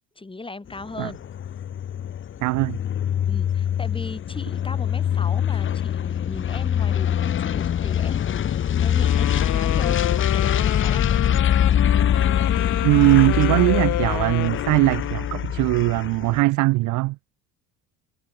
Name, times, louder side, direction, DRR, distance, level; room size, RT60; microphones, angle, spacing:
voice 1, 0.2-1.3 3.3-11.2, left 3 dB, 15° left, 3.9 m, -38 dB
sound 1, 0.7-16.4, left 9 dB, 35° left, 0.8 m, -23 dB
voice 2, 2.4-2.8 12.8-17.2, right 21 dB, 60° right, 0.4 m, -20 dB
Wind instrument woodwind instrument, 9.0-15.5, left 14 dB, 60° left, 1.6 m, -29 dB
supercardioid pair, 90°, 34 cm